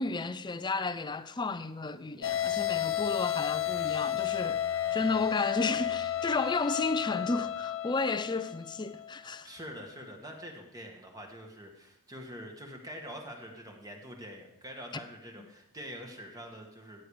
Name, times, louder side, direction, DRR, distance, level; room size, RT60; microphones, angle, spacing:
voice 1, 0.0-4.6 4.9-9.5, left 3 dB, 20° left, 0.5 m, -32 dB
sound 1, 2.2-9.1, left 11 dB, 60° left, 0.7 m, -32 dB
voice 2, 9.4-17.1, equal, 15° right, 1.8 m, -45 dB
15.0 x 8.6 x 5.0 m
head